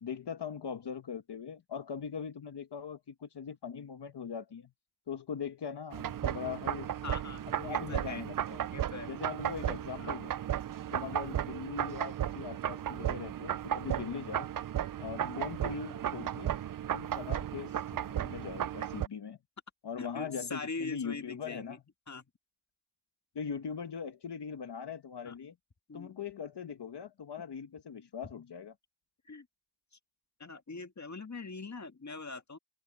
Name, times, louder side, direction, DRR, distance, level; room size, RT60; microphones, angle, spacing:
voice 1, 0.0-4.7 5.1-6.9 7.6-8.6 9.1-10.4 10.9-14.5 15.0-16.6 16.9-19.4 19.8-21.8 23.3-25.5 25.9-28.7, left 7 dB, 80° left, 1.2 m, -41 dB
sound 1, 5.9-19.1, right 10 dB, 55° right, 0.5 m, -35 dB
voice 2, 7.0-8.2 8.7-9.1 10.0-10.3 10.9-11.2 13.9-14.0 15.2-15.6 20.0-21.8 22.1-22.3 25.2-25.4 25.9-26.1 28.2-28.3 29.3-29.5 29.9-30.0 30.4-32.6, left 4 dB, 40° left, 2.1 m, -42 dB
wide cardioid pair, 70°, 41 cm